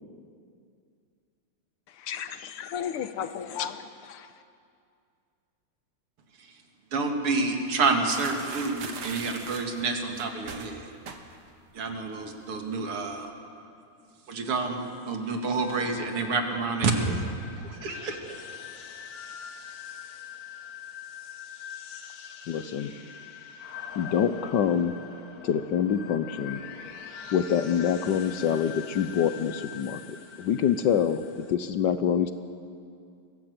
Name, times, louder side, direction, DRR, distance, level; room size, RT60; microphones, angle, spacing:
voice 1, 2.0-4.3, left 8 dB, 85° left, 10 dB, 1.9 m, -34 dB
voice 2, 6.9-10.9 11.7-13.3 14.3-17.2 17.6-18.2, right 3 dB, 85° right, 3 dB, 3.0 m, -28 dB
sound 1, 8.1-11.6 11.9-12.2 12.5-13.1, right 5 dB, 50° right, 1.9 m, -41 dB
sound 2, 15.6-31.5, left 8 dB, 50° left, 1.4 m, -43 dB
voice 3, 22.5-22.9 24.0-24.9 25.4-26.6 27.3-30.0 30.4-32.3, left 8 dB, 65° left, 10 dB, 1.2 m, -25 dB
23.5 x 16.5 x 7.9 m, 2.4 s
omnidirectional pair, 2.4 m